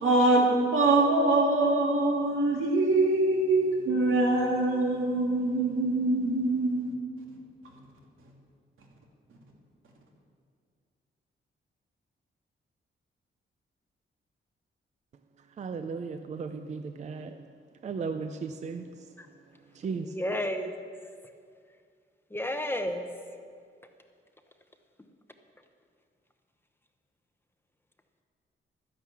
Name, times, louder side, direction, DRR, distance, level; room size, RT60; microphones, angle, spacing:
voice 1, 0.0-6.8, right 2 dB, 85° right, -1 dB, 2.8 m, -24 dB
voice 2, 15.6-17.4 17.8-18.8 19.8-20.1, right 5 dB, 35° right, 8 dB, 0.5 m, -35 dB
voice 3, 20.0-20.7 22.3-23.0, left 1 dB, 10° left, 6 dB, 0.7 m, -31 dB
12.5 x 10.5 x 7.1 m, 2.2 s
wide cardioid pair, 175°, 20 cm